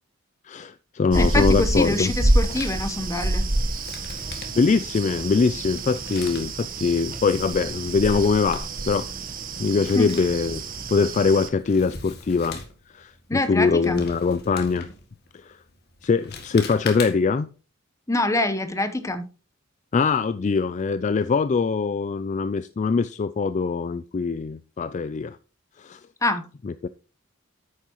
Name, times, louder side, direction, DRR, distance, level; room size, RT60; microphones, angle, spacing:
voice 1, 0.4-2.1 4.5-9.1 9.6-10.6 10.9-12.6 12.9-14.9 15.4-15.6 16.0-17.5 19.9-25.4 25.8-26.0 26.6-26.9, left 4 dB, 35° left, 0.3 m, -23 dB
voice 2, 1.1-3.5 9.9-10.2 13.3-14.0 18.1-19.3 26.2-26.5, left 2 dB, 15° left, 0.9 m, -25 dB
sound 1, 1.1-11.5, right 2 dB, 45° right, 1.1 m, -27 dB
Male speech man speaking, 2.1-17.4, left 4 dB, 55° left, 2.0 m, -42 dB
9.8 x 8.3 x 3.0 m
head